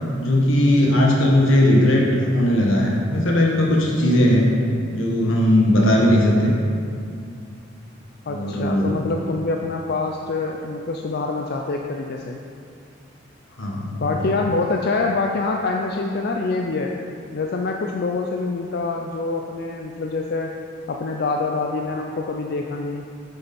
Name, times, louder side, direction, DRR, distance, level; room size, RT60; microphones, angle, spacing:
voice 1, 0.2-4.5 4.9-6.5 8.3-9.0 13.6-14.3, left 1 dB, 85° left, -2 dB, 1.1 m, -18 dB
voice 2, 8.3-12.4 14.0-16.9 17.3-20.5 20.9-23.0, left 3 dB, 55° left, 2 dB, 0.4 m, -25 dB
7.8 x 6.9 x 4.2 m, 2.5 s
head